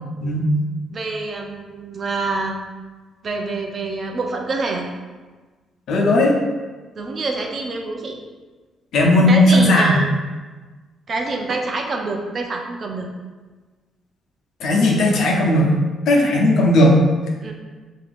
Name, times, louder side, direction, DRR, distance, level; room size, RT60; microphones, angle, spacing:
voice 1, 0.9-2.6 3.2-4.9 7.0-8.2 9.3-10.1 11.1-13.1 17.4-17.5, right 3 dB, 45° right, 2 dB, 0.6 m, -26 dB
voice 2, 5.9-6.4 8.9-9.9 14.6-15.7 16.1-17.0, left 1 dB, 75° left, -1 dB, 0.8 m, -15 dB
5.8 x 2.7 x 2.6 m, 1.3 s
cardioid pair, 90°, 0 cm